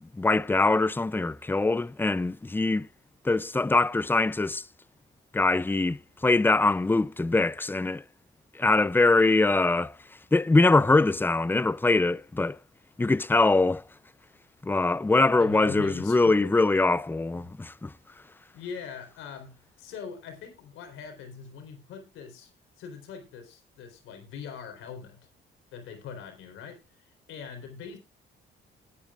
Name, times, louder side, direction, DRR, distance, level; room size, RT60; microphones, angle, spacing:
voice 1, 0.0-2.9 3.2-4.6 5.3-8.0 8.5-10.0 10.3-12.6 13.0-13.8 14.6-17.9, left 3 dB, 10° left, 0.5 m, -23 dB
voice 2, 15.4-16.5 17.3-17.5 18.5-22.5 22.8-25.3 25.7-28.0, left 6 dB, 90° left, 3.9 m, -42 dB
19.0 x 8.9 x 2.4 m
cardioid pair, 90°, 20 cm